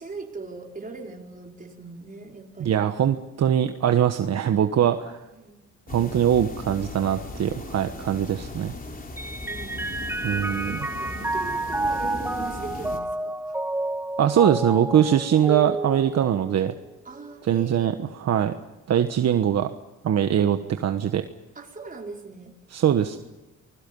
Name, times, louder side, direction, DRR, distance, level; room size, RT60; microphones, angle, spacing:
voice 1, 0.0-2.8 5.3-5.6 9.4-10.3 10.7-13.6 17.0-17.9 21.5-22.5, right 3 dB, 30° right, 0 dB, 5.1 m, -40 dB
voice 2, 2.6-5.2 5.9-8.7 10.2-10.8 14.2-16.7 17.5-17.9 18.2-18.5 18.9-19.7 20.0-21.2 22.7-23.2, right 9 dB, 60° right, 7 dB, 1.3 m, -22 dB
sound 1, 5.9-13.0, left 2 dB, 30° left, 3.6 m, -38 dB
Mallet percussion, 9.2-16.9, right 2 dB, 10° right, 0.8 m, -30 dB
28.5 x 21.5 x 5.5 m, 1.1 s
cardioid pair, 90°, 30 cm